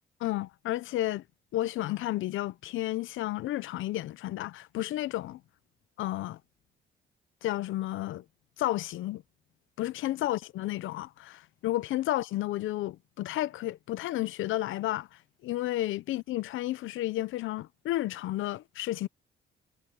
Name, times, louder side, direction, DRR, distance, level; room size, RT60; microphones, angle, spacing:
voice 1, 0.2-1.2 1.5-5.4 6.0-6.4 7.4-8.2 8.6-9.2 9.8-19.1, left 15 dB, 80° left, 0.7 m, -32 dB
cardioid pair, 90°, 20 cm